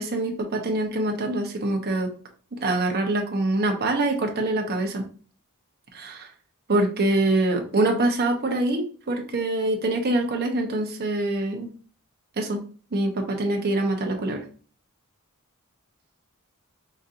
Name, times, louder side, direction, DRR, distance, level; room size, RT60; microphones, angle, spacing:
voice 1, 0.0-2.1 2.5-5.0 5.9-6.3 6.7-11.7 12.4-12.6 12.9-14.4, right 2 dB, 45° right, 2 dB, 0.9 m, -24 dB
5.1 x 2.7 x 2.5 m, 0.40 s
head